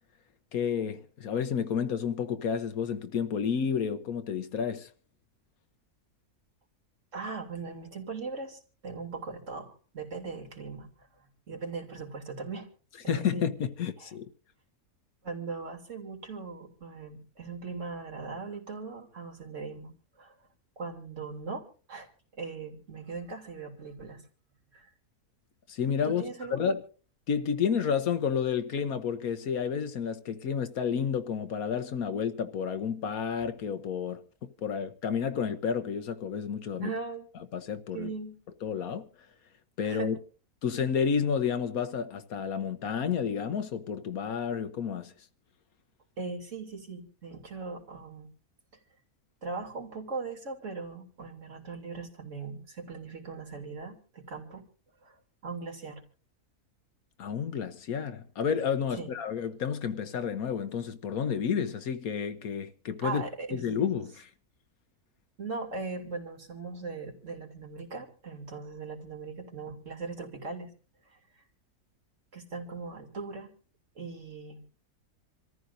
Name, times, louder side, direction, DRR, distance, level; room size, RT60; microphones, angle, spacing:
voice 1, 0.5-4.9 13.1-14.3 25.7-26.8 27.3-36.9 37.5-38.1 38.6-39.0 39.8-40.2 40.6-45.1 57.2-63.2 63.5-64.3, left 7 dB, 65° left, 1.3 m, -30 dB
voice 2, 7.1-12.7 13.0-13.5 14.0-14.1 15.2-20.3 20.8-22.1 22.4-24.2 24.7-24.9 26.0-26.7 36.8-37.3 37.9-38.3 39.8-40.1 46.2-48.3 49.4-54.6 55.0-55.2 55.4-56.0 59.0-59.1 63.0-63.6 65.4-70.7 71.0-71.4 72.3-73.5 73.9-74.6, right 4 dB, 50° right, 3.2 m, -39 dB
27.5 x 14.0 x 2.6 m
omnidirectional pair, 1.7 m